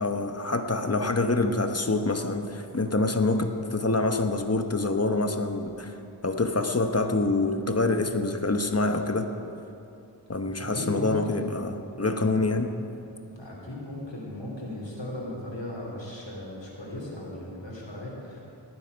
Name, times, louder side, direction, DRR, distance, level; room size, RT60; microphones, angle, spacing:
voice 1, 0.0-5.9 6.2-9.3 10.3-12.7, left 2 dB, 35° left, 6 dB, 1.0 m, -26 dB
voice 2, 10.5-11.2 13.3-18.4, left 1 dB, 85° left, -4 dB, 3.0 m, -37 dB
19.0 x 9.4 x 5.2 m, 2.8 s
wide cardioid pair, 45°, 44 cm